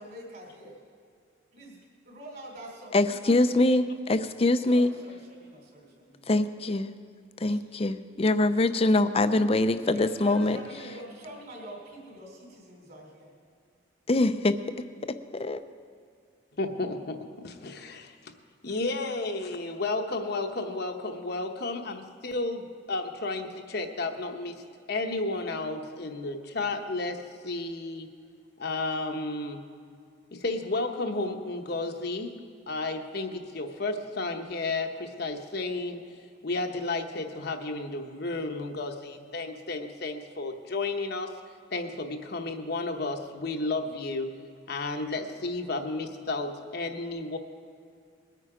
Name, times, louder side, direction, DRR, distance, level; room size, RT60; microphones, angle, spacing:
voice 1, 0.0-0.8 1.5-1.7 2.1-3.7 4.7-6.2 7.4-7.6 9.9-13.3, equal, 50° right, -1 dB, 3.7 m, -45 dB
voice 2, 2.9-4.9 6.3-6.9 7.4-10.6 14.1-14.6 15.3-15.6, left 2 dB, 30° left, 11 dB, 0.5 m, -24 dB
voice 3, 16.6-18.1 18.6-24.5 24.9-28.1 28.6-29.7 30.3-32.4 32.7-36.0 36.4-41.3 41.7-44.3 44.7-47.4, left 2 dB, 55° left, 5 dB, 0.9 m, -32 dB
21.0 x 9.3 x 5.0 m, 2.3 s
head